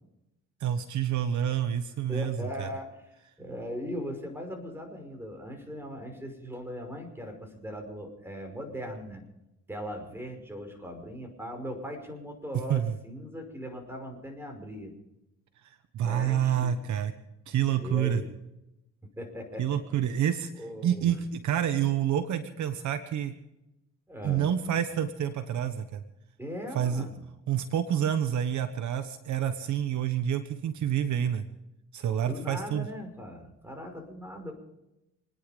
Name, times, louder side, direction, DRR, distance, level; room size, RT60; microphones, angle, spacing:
voice 1, 0.6-2.7 12.7-12.9 15.9-17.1 17.5-18.2 19.6-20.5 20.8-23.3 24.2-26.0 26.7-27.0 27.5-31.4 31.9-32.9, right 9 dB, 70° right, 9 dB, 1.2 m, -28 dB
voice 2, 2.1-3.0 3.4-9.2 9.7-14.9 16.0-16.7 17.8-18.3 19.2-19.8 20.6-21.1 24.1-24.5 26.4-27.2 32.3-34.5, equal, 10° right, 4 dB, 5.6 m, -39 dB
27.5 x 10.5 x 5.2 m, 0.90 s
cardioid pair, 90°, 30 cm